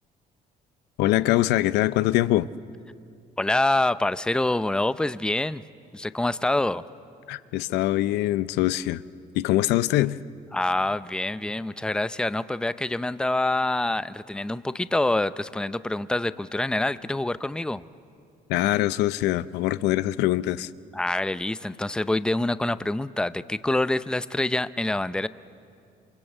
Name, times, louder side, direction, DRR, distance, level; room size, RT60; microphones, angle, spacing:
voice 1, 1.0-2.5 7.3-9.0 9.3-10.2 18.5-20.7, left 15 dB, 90° left, 15 dB, 0.6 m, -23 dB
voice 2, 3.4-5.6 5.9-6.8 10.5-17.8 20.9-25.3, left 2 dB, 5° left, 14 dB, 0.6 m, -26 dB
28.0 x 24.5 x 8.1 m, 2.4 s
cardioid pair, 110°, 17 cm